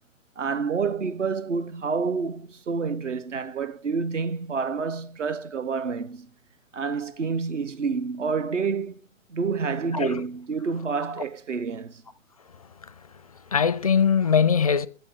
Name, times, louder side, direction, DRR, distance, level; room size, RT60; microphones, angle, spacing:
voice 1, 0.4-6.3 6.7-9.0 9.3-12.0, right 5 dB, 65° right, 1.2 m, -28 dB
voice 2, 12.6-13.1 13.3-14.9, left 7 dB, 30° left, 0.4 m, -22 dB
13.5 x 9.2 x 3.9 m
figure-of-eight pair, 130°, 40 cm